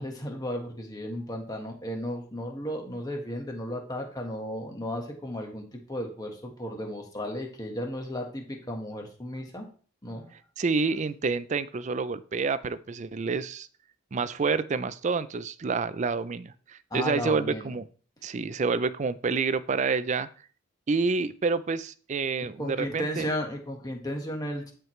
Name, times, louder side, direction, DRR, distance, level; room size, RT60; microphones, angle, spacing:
voice 1, 0.0-9.7 10.0-10.3 16.9-17.7 22.6-24.7, equal, 20° left, 2 dB, 1.5 m, -34 dB
voice 2, 10.6-13.7 14.1-17.9 18.2-20.3 20.9-23.3, right 4 dB, 35° right, 15 dB, 0.4 m, -28 dB
13.0 x 4.7 x 3.2 m, 0.42 s
head